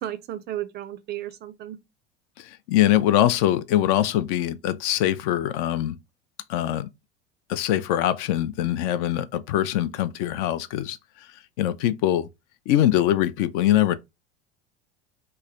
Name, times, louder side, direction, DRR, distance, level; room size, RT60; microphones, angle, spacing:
voice 1, 0.0-1.8, right 12 dB, 30° right, 0.4 m, -34 dB
voice 2, 2.4-6.0 6.5-6.9 7.5-11.0 11.6-12.3 12.7-13.9, left 12 dB, 55° left, 0.5 m, -23 dB
3.2 x 2.1 x 3.6 m
hypercardioid pair, 75°, 33 cm